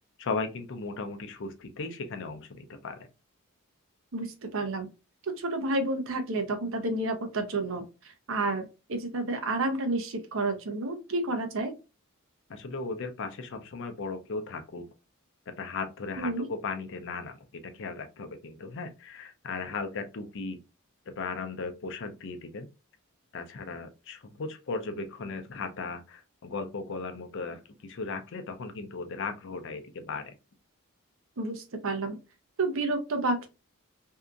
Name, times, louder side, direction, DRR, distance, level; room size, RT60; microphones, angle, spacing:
voice 1, 0.2-3.1 12.5-14.8 15.6-20.6 21.2-22.7 23.3-30.3, left 4 dB, 60° left, 7 dB, 0.5 m, -37 dB
voice 2, 4.1-4.9 5.2-11.7 16.2-16.5 31.4-32.2 32.6-33.5, right 2 dB, 65° right, 6 dB, 0.7 m, -30 dB
2.7 x 2.4 x 2.3 m, 0.28 s
head